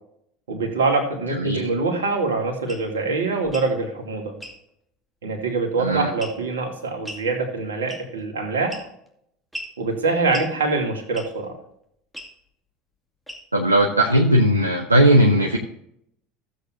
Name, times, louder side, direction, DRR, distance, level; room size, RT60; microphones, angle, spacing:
voice 1, 0.5-4.3 5.2-8.8 9.8-11.6, right 3 dB, 75° right, 2 dB, 2.5 m, -24 dB
sound 1, 2.7-2.9 3.4-3.7 4.4-4.6 6.2-6.5 7.0-7.3 7.9-8.2 8.7-9.1 9.5-9.8 10.3-10.5 11.1-11.4 12.1-12.3 13.3-13.6, equal, ahead, 2.3 m, -37 dB
voice 2, 5.8-6.1 13.5-15.6, right 1 dB, 90° right, 1 dB, 1.0 m, -17 dB
16.0 x 8.0 x 2.6 m, 0.72 s
figure-of-eight pair, 70°, 0 cm